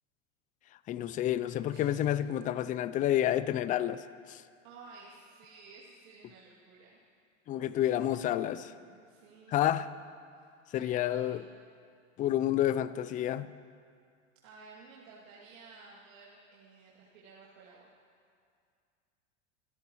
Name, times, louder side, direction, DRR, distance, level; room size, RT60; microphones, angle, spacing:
voice 1, 0.9-4.4 7.5-8.7 9.5-9.9 10.7-11.4 12.2-13.5, left 12 dB, 20° left, 16 dB, 0.3 m, -29 dB
voice 2, 1.7-2.0 4.6-7.0 7.8-9.7 10.3-11.6 14.4-17.9, right 4 dB, 80° right, -7 dB, 2.6 m, -54 dB
27.0 x 13.0 x 3.1 m, 2.3 s
hypercardioid pair, 100°, 39 cm